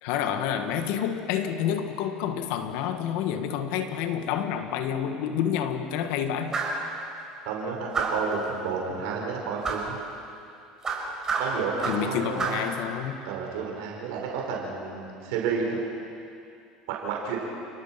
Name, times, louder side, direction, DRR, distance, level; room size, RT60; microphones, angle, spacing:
voice 1, 0.0-6.6 11.8-13.2, left 9 dB, 75° left, 7 dB, 1.8 m, -29 dB
sound 1, 6.5-6.8 7.9-8.3 9.6-9.9 10.8-12.1 12.4-12.7, right 4 dB, 25° right, 5.5 m, -29 dB
voice 2, 7.4-10.0 11.4-12.6 13.2-15.8 16.9-17.4, right 5 dB, 80° right, -1 dB, 4.8 m, -31 dB
30.0 x 19.5 x 6.0 m, 2.6 s
supercardioid pair, 105°, 2 cm